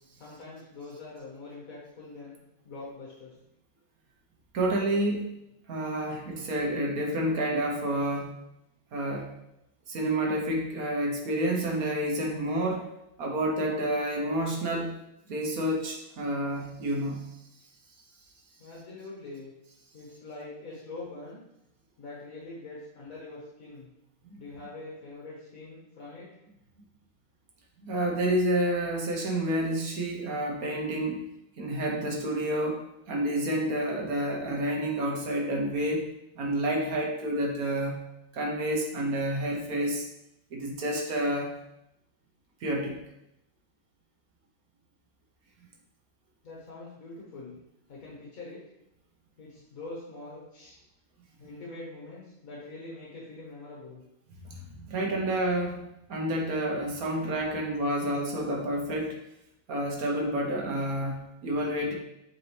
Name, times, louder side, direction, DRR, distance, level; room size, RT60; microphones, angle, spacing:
voice 1, 0.2-2.4 2.6-3.3 18.6-19.5 19.9-21.4 22.0-23.9 24.4-26.3 46.4-47.6 47.9-48.6 49.4-50.8 51.4-54.0, left 2 dB, 45° left, -5 dB, 1.6 m, -44 dB
voice 2, 4.5-5.2 5.7-8.3 8.9-9.3 9.9-12.9 13.2-14.9 15.3-17.4 24.2-24.4 27.8-31.2 31.6-36.0 36.4-38.0 38.3-40.0 40.5-41.6 42.6-43.0 54.4-59.2 59.7-61.9, right 1 dB, 55° right, -1 dB, 1.2 m, -29 dB
7.8 x 4.1 x 3.3 m, 0.85 s
omnidirectional pair, 2.2 m